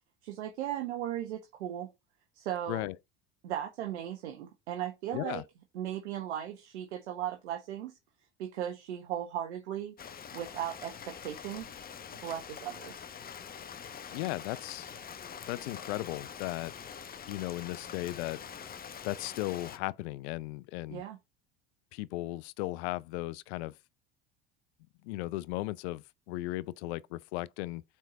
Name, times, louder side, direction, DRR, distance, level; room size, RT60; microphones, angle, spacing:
voice 1, 0.2-1.9 2.3-2.9 3.4-5.4 5.7-8.0 8.4-9.9 10.3-11.7 12.2-13.0 20.9-21.2, right 11 dB, 85° right, 1.1 m, -37 dB
voice 2, 5.1-5.4 14.1-14.9 15.5-16.7 17.3-18.4 19.0-21.0 21.9-23.7 25.0-27.8, left 18 dB, 75° left, 0.5 m, -36 dB
Rain, 10.0-19.8, left 7 dB, 25° left, 0.8 m, -45 dB
4.6 x 4.4 x 5.7 m
hypercardioid pair, 85°, 34 cm